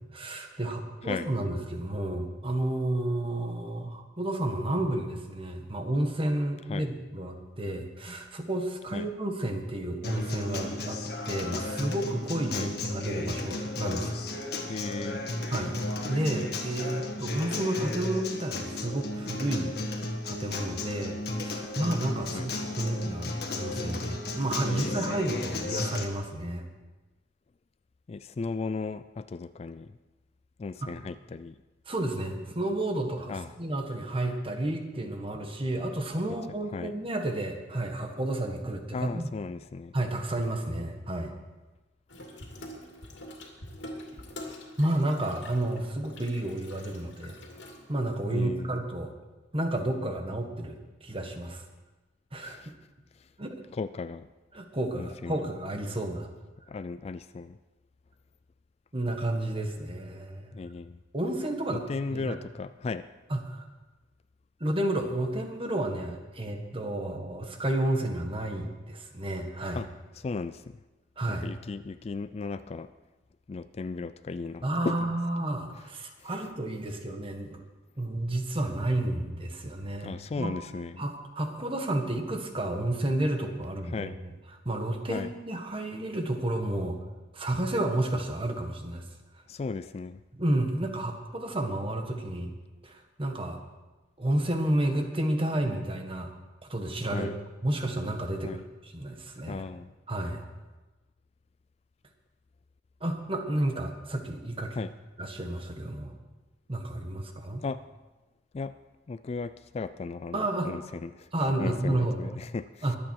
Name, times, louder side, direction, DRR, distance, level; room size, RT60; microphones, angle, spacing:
voice 1, 0.0-14.2 15.5-19.7 20.2-26.7 30.8-31.0 31.9-39.3 39.9-41.3 44.8-47.4 47.9-49.1 49.5-51.6 52.3-52.6 53.4-53.6 54.5-56.3 58.9-60.5 61.1-61.8 62.1-62.4 63.3-63.7 64.6-69.8 71.2-71.5 74.6-77.6 78.0-80.5 81.0-84.1 84.6-87.0 87.3-89.0 90.3-92.5 92.8-93.6 94.2-96.3 96.6-97.3 97.6-99.6 100.1-100.4 103.0-104.8 105.2-106.2 106.7-107.6 110.3-110.7 111.3-112.2 112.8-113.0, right 1 dB, 30° right, 4 dB, 1.6 m, -31 dB
Acoustic guitar, 10.0-26.0, left 2 dB, 60° left, 1.8 m, -34 dB
voice 2, 14.7-15.2 22.3-22.5 24.6-25.2 28.1-30.0 30.6-31.5 33.3-33.6 36.7-36.9 38.9-39.9 48.3-48.8 52.4-52.7 53.7-54.3 55.0-55.5 56.7-57.6 60.5-61.0 61.7-63.1 69.7-69.9 70.1-70.8 71.3-72.9 73.5-75.1 76.2-76.3 80.0-81.1 83.9-84.2 85.1-85.3 89.5-90.2 97.1-97.4 98.4-98.6 99.5-99.9 104.8-104.9 107.6-107.8 108.5-108.8 109.1-111.3 111.6-113.0, left 4 dB, 35° left, 13 dB, 0.3 m, -36 dB
Water tap faucet / Sink (filling or washing), 42.1-48.2, left 1 dB, 80° left, 2.5 m, -45 dB
22.5 x 8.8 x 4.7 m, 1.2 s
head